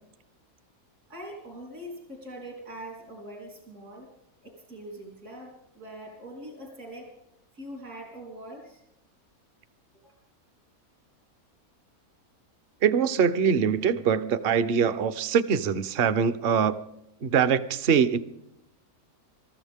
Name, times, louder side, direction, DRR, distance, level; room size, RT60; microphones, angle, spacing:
voice 1, 1.1-4.1 4.4-7.1 7.5-8.8 10.0-10.1, right 1 dB, 70° right, -1 dB, 4.3 m, -42 dB
voice 2, 12.8-16.8 17.2-18.2, right 7 dB, 50° right, 13 dB, 0.9 m, -23 dB
26.0 x 14.0 x 3.6 m, 0.79 s
omnidirectional pair, 1.6 m